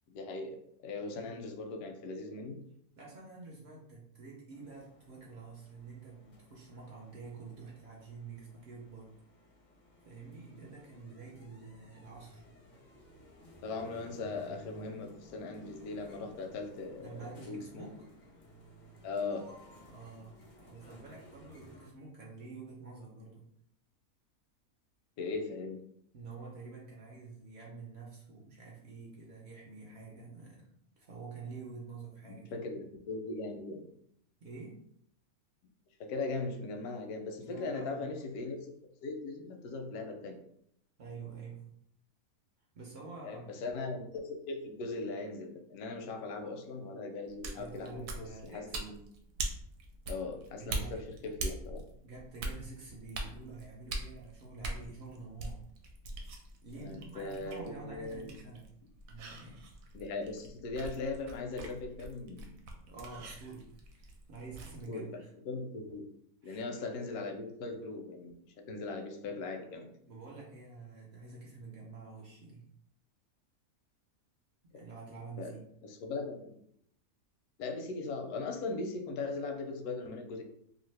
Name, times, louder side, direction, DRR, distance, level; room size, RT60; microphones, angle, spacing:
voice 1, 0.1-0.6 0.8-2.6 13.6-17.9 19.0-19.5 25.2-25.8 32.3-33.9 36.0-38.7 39.0-40.4 43.2-49.0 50.1-51.8 56.8-58.3 59.9-62.7 64.9-66.1 66.4-69.9 75.4-75.6 75.8-76.6 77.6-80.4, left 3 dB, 85° left, 5 dB, 1.1 m, -39 dB
voice 2, 3.0-9.1 10.0-12.4 17.0-18.0 19.8-23.4 26.1-30.7 31.0-32.6 34.4-34.8 37.4-38.1 41.0-41.7 42.7-43.5 47.5-48.7 50.6-51.0 52.0-55.6 56.6-58.6 59.1-59.6 62.9-65.3 66.4-66.6 70.0-72.6 74.7-75.6, right 4 dB, 60° right, -3 dB, 0.8 m, -48 dB
sound 1, 4.5-21.9, left 1 dB, 55° left, 0.5 m, -57 dB
sound 2, 47.3-64.9, right 2 dB, 75° right, 1.0 m, -43 dB
2.8 x 2.5 x 3.2 m, 0.71 s
omnidirectional pair, 1.5 m